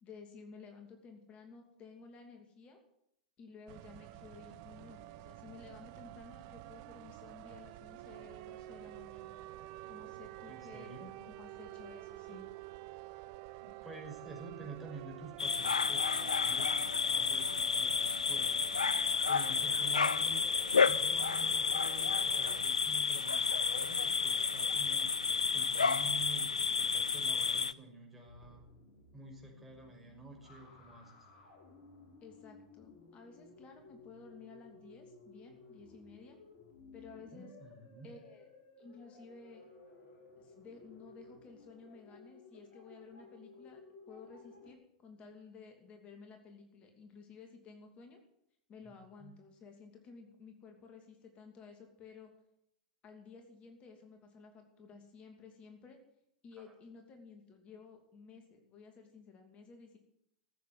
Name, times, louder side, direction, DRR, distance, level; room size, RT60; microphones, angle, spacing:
voice 1, 0.0-2.8 3.4-9.4 9.9-10.9 11.2-12.5 32.2-36.4 36.9-37.5 38.0-38.5 38.8-39.7 40.4-43.8 44.1-48.2 48.7-52.3 53.0-56.0 56.4-60.0, left 5 dB, 30° left, 4 dB, 2.7 m, -54 dB
sound 1, 3.7-22.6, right 16 dB, 50° right, 0.6 m, -50 dB
voice 2, 10.5-11.3 12.3-12.4 13.6-18.8 19.3-20.4 20.8-28.7 29.1-31.3 37.3-38.1 48.8-48.9 49.2-49.3 56.6-56.7, right 4 dB, 5° right, -1 dB, 6.0 m, -50 dB
sound 2, 15.4-27.7, left 5 dB, 85° left, 0.5 m, -31 dB
sound 3, 28.3-44.7, left 3 dB, 50° left, 5.1 m, -57 dB
14.5 x 8.5 x 9.6 m, 0.75 s
figure-of-eight pair, 95°, 4 cm